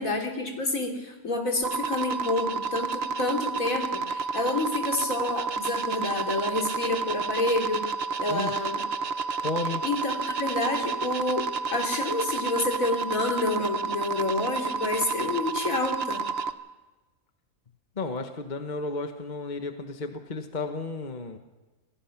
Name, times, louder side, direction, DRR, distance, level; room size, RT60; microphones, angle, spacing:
voice 1, 0.0-7.8 8.2-8.8 9.8-11.4 11.7-16.2, left 2 dB, 70° left, 2 dB, 3.6 m, -28 dB
sound 1, 1.6-16.5, right 4 dB, 50° right, 1.1 m, -30 dB
voice 2, 9.4-9.8 18.0-21.4, left 3 dB, 35° left, 6 dB, 1.4 m, -33 dB
26.5 x 18.0 x 6.0 m, 1.2 s
omnidirectional pair, 1.5 m